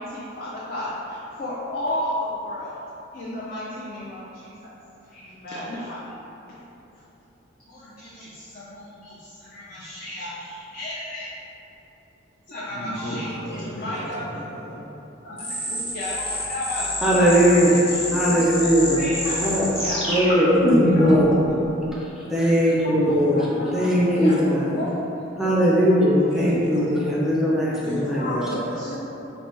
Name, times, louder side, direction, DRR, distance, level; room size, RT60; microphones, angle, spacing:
voice 1, 0.0-2.8 3.1-4.5 5.1-6.0 7.7-11.3 12.5-13.3 13.7-14.4 15.2-17.3 17.7-21.7 22.2-22.3 22.8-24.3 24.7-25.2 25.7-26.1 26.7-26.9 27.7-27.8 28.2-28.3 28.8-29.0, left 1 dB, 50° left, -8 dB, 0.5 m, -33 dB
voice 2, 12.7-14.8 22.9-24.0 24.5-24.7 26.3-26.8 27.8-29.0, equal, 65° left, -7 dB, 1.0 m, -34 dB
sound 1, 15.4-21.2, left 1 dB, 30° left, 1.2 m, -25 dB
voice 3, 17.0-17.8 18.1-19.0 19.4-19.7 20.1-21.4 21.9-23.5 23.7-24.7 25.4-28.3, equal, 5° right, -6 dB, 0.4 m, -19 dB
3.2 x 2.6 x 4.3 m, 3.0 s
head